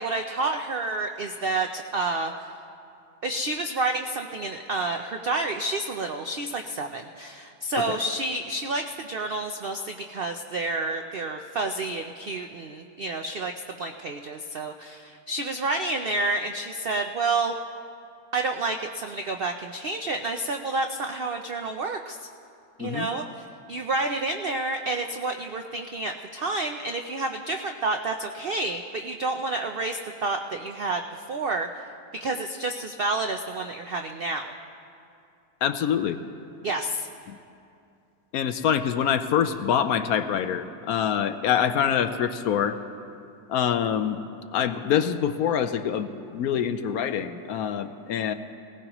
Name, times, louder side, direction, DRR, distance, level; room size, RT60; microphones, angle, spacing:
voice 1, 0.0-2.3 3.2-17.5 18.3-22.2 22.8-23.2 23.7-31.7 32.2-34.5 36.6-37.1, right 2 dB, 85° right, 5 dB, 0.5 m, -29 dB
voice 2, 35.6-36.2 37.3-37.4 38.3-42.8 43.5-44.2 44.5-48.3, left 8 dB, 70° left, 9 dB, 1.0 m, -25 dB
19.5 x 18.0 x 3.0 m, 2.5 s
omnidirectional pair, 1.7 m